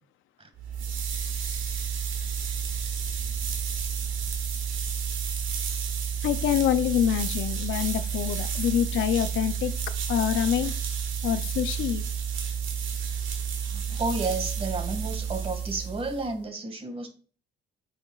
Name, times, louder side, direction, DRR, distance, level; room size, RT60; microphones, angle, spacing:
sound 1, 0.5-16.3, right 7 dB, 80° right, 1.6 m, -31 dB
voice 1, 6.2-9.7 10.1-10.7 11.2-12.0, left 10 dB, 80° left, 12 dB, 0.5 m, -26 dB
voice 2, 13.7-17.1, right 3 dB, 30° right, 4 dB, 1.9 m, -32 dB
8.5 x 5.3 x 2.3 m, 0.40 s
cardioid pair, 90°, 20 cm